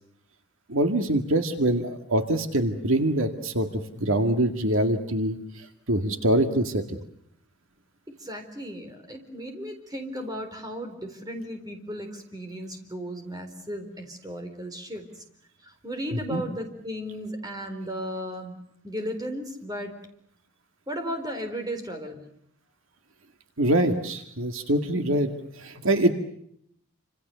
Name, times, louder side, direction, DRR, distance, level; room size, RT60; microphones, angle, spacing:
voice 1, 0.7-7.0 16.3-16.4 23.6-25.3 25.6-26.1, right 1 dB, 65° right, 6 dB, 2.1 m, -24 dB
voice 2, 8.2-15.2 15.6-18.6 18.8-20.0 20.9-22.3, equal, 15° right, 5 dB, 4.1 m, -35 dB
28.5 x 27.0 x 7.0 m, 0.70 s
head